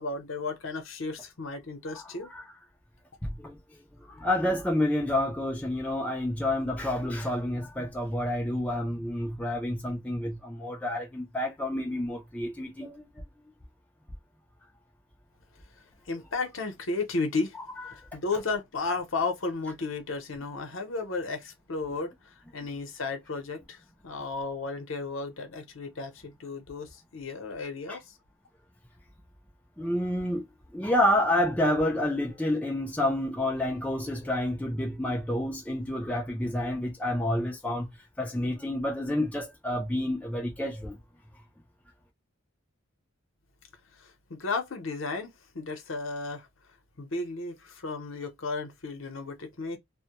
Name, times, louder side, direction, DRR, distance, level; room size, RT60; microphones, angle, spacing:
voice 1, 0.0-2.3 16.1-17.6 17.9-28.0 44.0-46.5 47.0-49.8, left 3 dB, 70° left, 0.7 m, -34 dB
voice 2, 1.9-2.4 3.2-3.6 4.0-13.0 17.9-18.0 21.9-22.0 27.9-28.0 29.8-30.4 30.7-37.9 38.2-41.0, left 1 dB, 5° left, 0.3 m, -29 dB
2.1 x 2.1 x 2.8 m
head